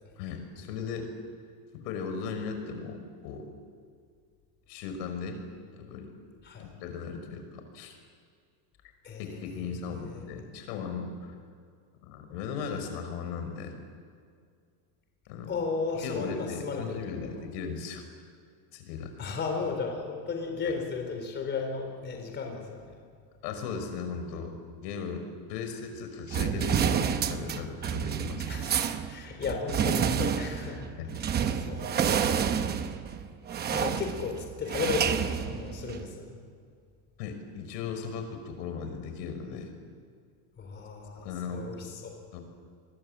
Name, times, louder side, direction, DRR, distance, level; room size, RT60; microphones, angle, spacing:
voice 1, 0.2-1.1 1.7-3.5 4.7-5.4 5.7-6.1 6.6-8.0 9.2-11.3 12.0-13.8 15.3-15.5 16.0-18.0 18.7-19.1 20.6-20.7 23.4-28.5 31.0-31.1 37.2-39.7 41.2-41.7 42.3-42.4, left 5 dB, 85° left, 6 dB, 5.5 m, -37 dB
voice 2, 9.0-10.4 15.5-17.0 19.2-22.9 28.5-28.8 29.1-30.9 31.2-32.4 33.7-36.4 40.6-42.2, left 5 dB, 20° left, 3 dB, 4.1 m, -35 dB
sound 1, 26.3-36.1, right 8 dB, 20° right, 0.9 m, -29 dB
28.0 x 22.0 x 8.8 m, 2.2 s
cardioid pair, 175°, 48 cm